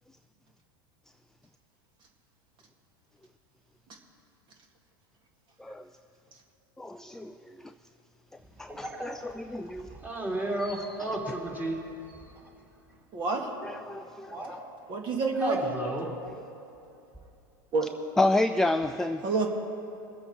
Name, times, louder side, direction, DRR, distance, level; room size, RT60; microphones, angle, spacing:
voice 1, 6.8-7.6 8.6-9.9 10.6-11.0 13.6-14.6 18.2-19.2, left 2 dB, 5° left, 9 dB, 0.3 m, -30 dB
voice 2, 8.7-9.1 9.9-11.8 12.2-12.3 14.2-14.5 15.4-16.1, right 1 dB, 15° right, -3 dB, 3.1 m, -33 dB
voice 3, 13.1-13.5 14.9-15.6 17.7-17.9 19.2-19.5, right 4 dB, 40° right, 2 dB, 2.1 m, -27 dB
22.5 x 7.8 x 4.4 m, 2.8 s
hypercardioid pair, 100°, 12 cm